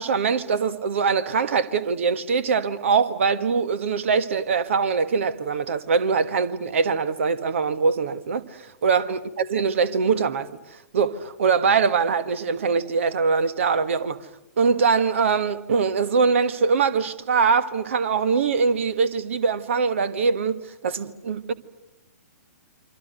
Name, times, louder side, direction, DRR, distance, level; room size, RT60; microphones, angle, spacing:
voice 1, 0.0-10.5 10.9-14.2 14.6-21.5, right 5 dB, 50° right, 1.4 m, -22 dB
27.5 x 25.0 x 8.0 m
figure-of-eight pair, 115°, 8 cm